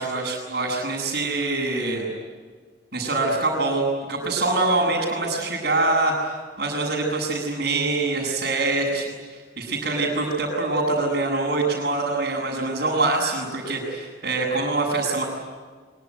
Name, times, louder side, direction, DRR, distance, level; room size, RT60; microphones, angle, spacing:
voice 1, 0.0-2.1 2.9-6.3 6.6-15.2, right 2 dB, 50° right, -6 dB, 7.1 m, -24 dB
24.5 x 24.0 x 9.5 m, 1.5 s
head